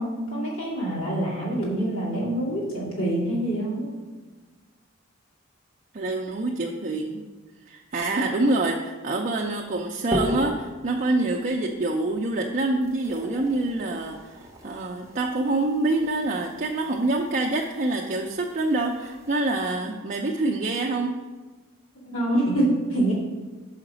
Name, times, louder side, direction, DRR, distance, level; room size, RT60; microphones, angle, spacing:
voice 1, 0.0-3.9 22.1-23.1, right 1 dB, 75° left, -6 dB, 2.4 m, -26 dB
voice 2, 5.9-7.2 7.7-14.4 14.6-21.2, right 2 dB, 40° right, -1 dB, 0.5 m, -26 dB
sound 1, 9.5-19.8, equal, 15° right, 1.1 m, -38 dB
5.7 x 4.9 x 6.1 m, 1.3 s
head